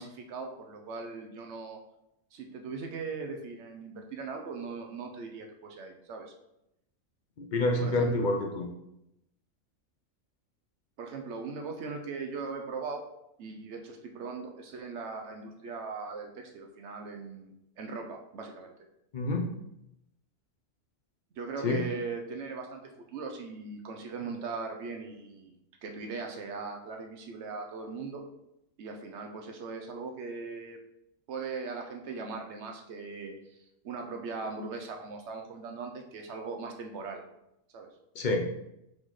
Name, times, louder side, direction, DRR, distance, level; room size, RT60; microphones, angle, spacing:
voice 1, 0.0-1.8 2.3-6.3 7.8-8.3 11.0-13.0 13.4-18.7 21.3-22.8 23.1-28.2 28.8-30.8 31.3-33.3 33.8-37.2 37.7-37.9, right 4 dB, 65° right, 3 dB, 0.8 m, -39 dB
voice 2, 7.4-8.7 19.1-19.5 21.6-21.8 38.2-38.5, left 2 dB, 60° left, 2 dB, 0.5 m, -27 dB
4.0 x 3.7 x 3.0 m, 0.83 s
omnidirectional pair, 1.4 m